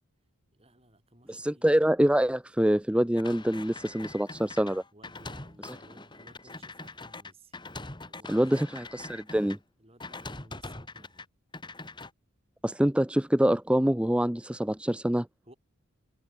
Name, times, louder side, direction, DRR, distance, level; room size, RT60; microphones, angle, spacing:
voice 1, 0.5-1.8 4.9-7.6 8.0-8.8 9.8-11.3 15.4-15.6, right 1 dB, 25° right, 7.0 m, -58 dB
voice 2, 1.3-4.8 5.6-5.8 8.3-9.6 12.6-15.3, equal, 5° right, 0.5 m, -25 dB
sound 1, 3.2-9.6 10.0-11.3 11.5-12.1, left 2 dB, 20° left, 3.8 m, -43 dB
head